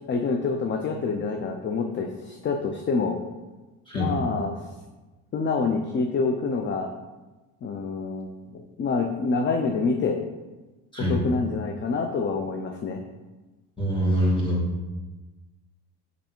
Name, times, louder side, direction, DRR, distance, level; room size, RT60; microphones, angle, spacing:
voice 1, 0.0-3.2 3.9-4.7 5.3-6.9 7.6-10.2 11.1-13.0, left 4 dB, 30° left, 4 dB, 0.5 m, -27 dB
voice 2, 13.8-14.6, equal, 10° left, -5 dB, 2.3 m, -24 dB
5.5 x 5.3 x 4.5 m, 1.2 s
cardioid pair, 120°, 39 cm